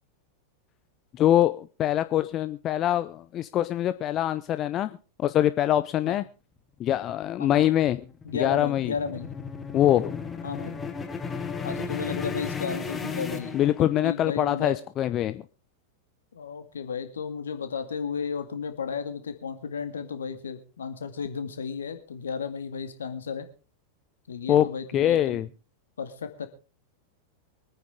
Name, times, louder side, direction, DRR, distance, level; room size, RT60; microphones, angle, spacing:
voice 1, 1.2-4.9 5.2-6.2 6.8-8.0 8.4-8.9 9.7-10.2 13.5-15.4 24.5-24.7 24.9-25.5, left 12 dB, 30° left, 13 dB, 0.5 m, -24 dB
sound 1, 7.2-14.2, left 5 dB, 15° left, 1.6 m, -35 dB
voice 2, 8.2-9.3 10.4-10.7 11.6-14.8 16.3-23.5 24.3-25.4 26.0-26.5, left 6 dB, 65° left, 8 dB, 2.0 m, -33 dB
24.0 x 9.4 x 3.7 m, 0.35 s
figure-of-eight pair, 90°, 0 cm